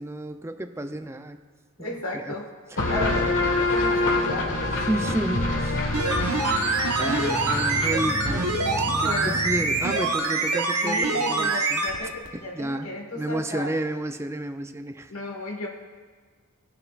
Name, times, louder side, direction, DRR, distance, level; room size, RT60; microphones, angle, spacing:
voice 1, 0.0-1.4 1.8-2.4 2.7-2.8 4.9-5.9 7.0-8.5 9.0-11.9 12.3-12.9 13.2-15.1, right 1 dB, 10° right, 8 dB, 0.5 m, -31 dB
voice 2, 1.8-2.5 2.8-4.8 5.9-6.3 7.0-7.1 9.0-9.4 10.8-13.7 15.1-15.7, left 1 dB, 75° left, 0 dB, 1.6 m, -34 dB
sound 1, 2.8-10.1, left 2 dB, 60° left, 1.5 m, -27 dB
sound 2, 5.9-12.0 12.3-12.4, right 3 dB, 90° right, 1.1 m, -25 dB
19.5 x 6.6 x 2.4 m, 1.5 s
head